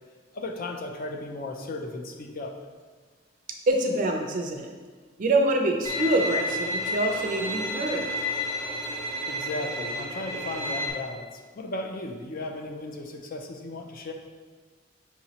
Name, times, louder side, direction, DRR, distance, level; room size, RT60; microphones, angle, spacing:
voice 1, 0.3-2.5 9.3-14.1, left 2 dB, 50° left, 3 dB, 0.5 m, -35 dB
voice 2, 3.7-4.7 5.2-8.1, right 2 dB, 45° right, 2 dB, 0.4 m, -25 dB
Bowed string instrument, 5.8-10.9, left 1 dB, 15° left, 0.8 m, -31 dB
5.7 x 3.0 x 2.8 m, 1.5 s
head